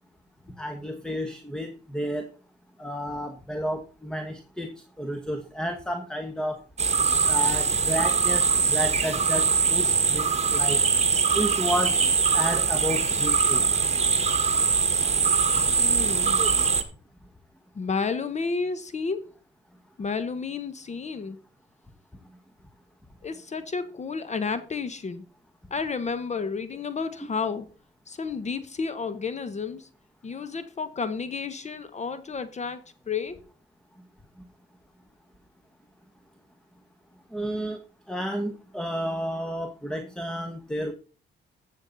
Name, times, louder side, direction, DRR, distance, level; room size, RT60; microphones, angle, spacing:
voice 1, 0.6-2.3 2.8-4.7 5.0-6.6 7.3-10.8 11.3-11.9 12.3-13.6 16.4-16.5 37.3-37.8 38.1-40.9, equal, 5° left, 1.2 m, -31 dB
sound 1, 6.8-16.8, right 5 dB, 35° right, 1.7 m, -22 dB
voice 2, 15.8-16.4 17.8-19.3 20.0-21.4 23.2-25.3 25.7-27.7 28.1-29.9 30.2-32.8 33.1-33.4, left 5 dB, 35° left, 1.0 m, -31 dB
14.0 x 7.2 x 4.0 m
cardioid pair, 90°, 20 cm